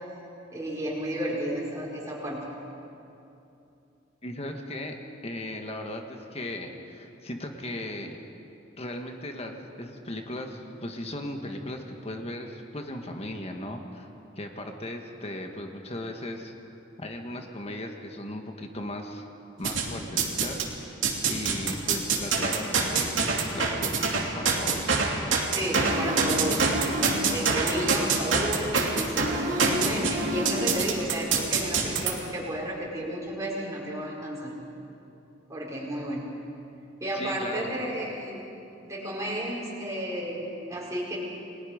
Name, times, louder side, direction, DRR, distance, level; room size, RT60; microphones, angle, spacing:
voice 1, 0.5-2.4 25.5-26.7 27.3-34.5 35.5-36.3 37.0-38.4 38.9-40.4 40.7-41.2, right 1 dB, 15° right, -5 dB, 5.1 m, -32 dB
voice 2, 4.2-5.0 5.2-8.2 8.7-14.1 14.4-16.5 17.0-19.3 19.6-20.9 21.2-25.1 37.1-37.7, left 1 dB, 35° left, 4 dB, 1.7 m, -37 dB
sound 1, 19.6-20.7 21.0-32.1, right 4 dB, 85° right, 2.8 m, -25 dB
29.5 x 20.5 x 5.2 m, 2.8 s
head